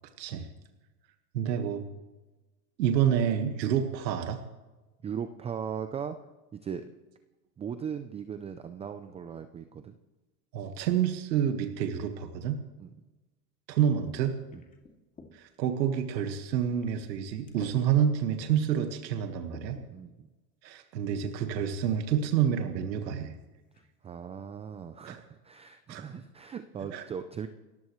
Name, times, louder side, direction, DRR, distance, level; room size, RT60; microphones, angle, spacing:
voice 1, 0.2-0.5 1.3-1.8 2.8-4.4 10.5-12.6 13.7-14.4 15.3-19.8 20.6-23.3 25.0-25.2 25.9-26.0 26.9-27.0, right 9 dB, 85° right, 6 dB, 1.7 m, -28 dB
voice 2, 5.0-6.2 6.5-6.8 7.6-9.9 12.8-12.9 14.5-14.6 19.9-20.3 24.0-27.5, right 7 dB, 15° right, 9 dB, 0.4 m, -38 dB
sound 1, 14.5-15.3 16.1-16.2 16.8-17.2 17.5-17.8 18.5-18.6 19.2-19.9 21.0-21.1 21.6-21.8 22.8-22.9 23.3-23.4 23.7-24.1, left 3 dB, 15° left, 2.5 m, -51 dB
29.5 x 14.0 x 3.2 m, 1.2 s
supercardioid pair, 120°, 49 cm